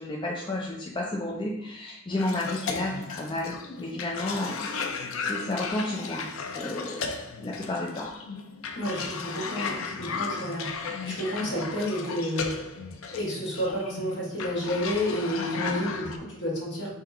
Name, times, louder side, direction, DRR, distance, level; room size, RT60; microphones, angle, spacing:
voice 1, 0.0-4.7 5.2-6.3 6.5-7.1 7.4-8.1, left 1 dB, 25° left, -2 dB, 0.4 m, -32 dB
Cough, 2.2-16.2, left 5 dB, 80° left, 0.5 m, -35 dB
voice 2, 8.7-12.8 13.1-16.9, equal, 60° left, -4 dB, 1.5 m, -31 dB
3.7 x 2.8 x 4.7 m, 0.80 s
head